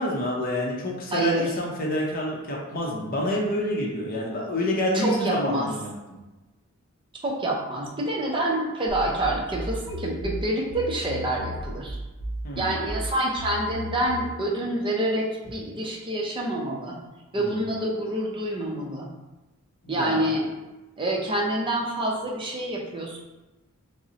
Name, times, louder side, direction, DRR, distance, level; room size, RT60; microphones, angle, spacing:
voice 1, 0.0-6.2 12.4-12.7 17.4-17.7 19.8-20.2, left 1 dB, 40° left, -2 dB, 0.6 m, -28 dB
voice 2, 1.1-1.5 4.9-5.7 7.2-12.0 12.6-17.0 17.3-19.1 19.9-20.5 21.0-23.2, right 1 dB, 20° right, -2 dB, 0.5 m, -27 dB
sound 1, 8.9-14.3, equal, 70° right, 0.6 m, -35 dB
5.3 x 2.0 x 2.8 m, 1.1 s
head